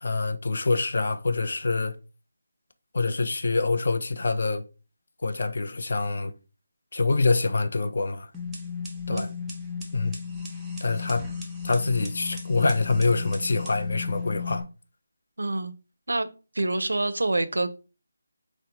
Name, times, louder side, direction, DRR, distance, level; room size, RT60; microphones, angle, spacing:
voice 1, 0.0-2.0 2.9-4.6 5.2-6.3 6.9-8.3 9.1-9.3 9.9-10.2 10.8-11.3 11.6-14.6, left 3 dB, 60° left, 0.4 m, -25 dB
sound 1, 8.3-14.6, left 5 dB, 5° right, 0.5 m, -35 dB
voice 2, 15.4-15.7 16.1-16.3 16.5-17.7, right 2 dB, 80° right, 0.4 m, -26 dB
3.7 x 2.0 x 2.8 m
figure-of-eight pair, 165°, 0 cm